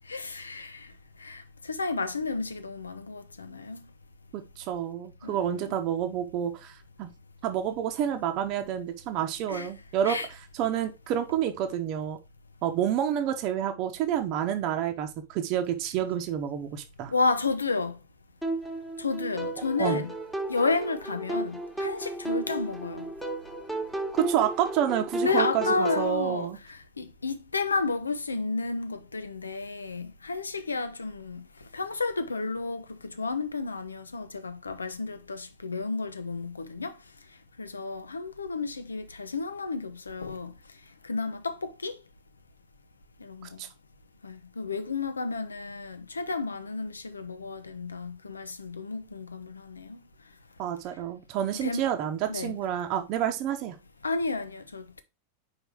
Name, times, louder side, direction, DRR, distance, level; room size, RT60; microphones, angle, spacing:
voice 1, 0.1-0.9 1.2-3.8 5.2-5.7 9.5-9.7 10.0-10.3 17.1-18.0 19.0-20.1 20.5-23.1 25.2-31.4 31.7-37.0 37.6-40.5 41.0-42.0 43.2-43.6 44.2-50.0 51.5-51.9 52.3-52.6 54.0-55.0, left 3 dB, 75° left, 0.7 m, -32 dB
voice 2, 4.3-7.1 7.4-10.2 10.5-12.2 12.6-17.1 19.8-20.0 24.1-26.6 43.6-43.7 50.6-53.8, right 10 dB, 40° right, 0.9 m, -29 dB
sound 1, 18.4-26.1, right 2 dB, ahead, 1.3 m, -33 dB
4.8 x 4.7 x 4.5 m
figure-of-eight pair, 90°, 0 cm